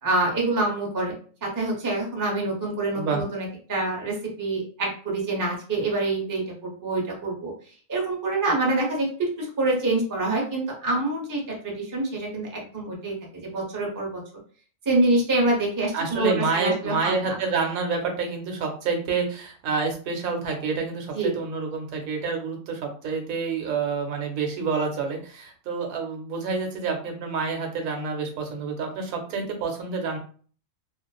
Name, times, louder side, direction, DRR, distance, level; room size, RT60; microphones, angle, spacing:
voice 1, 0.0-1.1 1.4-7.5 7.9-14.2 14.9-17.3 21.1-21.3, right 2 dB, 25° right, -2 dB, 0.4 m, -26 dB
voice 2, 15.9-30.2, right 4 dB, 85° right, 3 dB, 1.1 m, -28 dB
2.4 x 2.3 x 2.3 m, 0.43 s
omnidirectional pair, 1.4 m